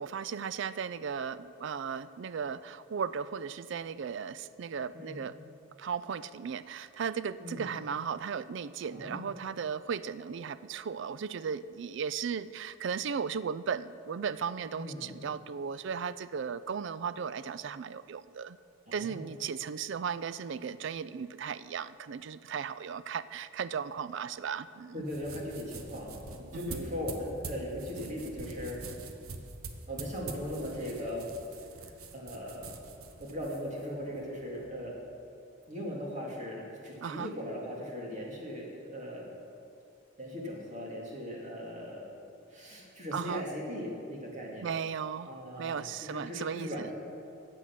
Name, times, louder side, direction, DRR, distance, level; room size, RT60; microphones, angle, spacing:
voice 1, 0.0-5.4 5.8-18.6 18.9-25.0 26.5-26.8 37.0-37.3 43.1-43.4 44.6-46.9, right 6 dB, 55° right, 15 dB, 0.3 m, -36 dB
voice 2, 7.4-7.7 8.9-9.3 14.7-15.2 18.9-19.3 24.9-28.8 29.9-31.3 31.8-32.7 33.2-34.9 35.7-39.3 40.2-42.1 42.5-44.7 45.2-46.9, equal, 35° right, -2 dB, 2.2 m, -39 dB
sound 1, 25.0-34.7, right 3 dB, 90° right, 1.0 m, -45 dB
13.5 x 8.2 x 5.9 m, 2.7 s
head